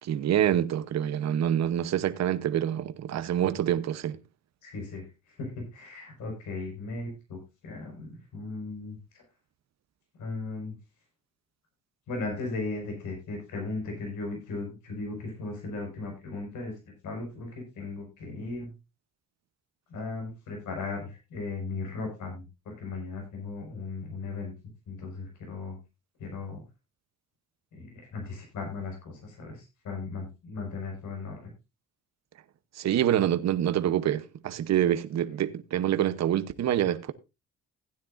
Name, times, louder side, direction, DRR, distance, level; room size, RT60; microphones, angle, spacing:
voice 1, 0.0-4.2 32.8-37.1, right 10 dB, 60° right, 0.9 m, -26 dB
voice 2, 4.6-7.4 7.6-9.0 10.2-10.7 12.1-16.7 17.0-18.7 19.9-24.5 24.9-25.8 26.2-26.6 27.7-31.5, left 3 dB, 80° left, 5.4 m, -37 dB
16.0 x 9.7 x 2.6 m
cardioid pair, 90°, 30 cm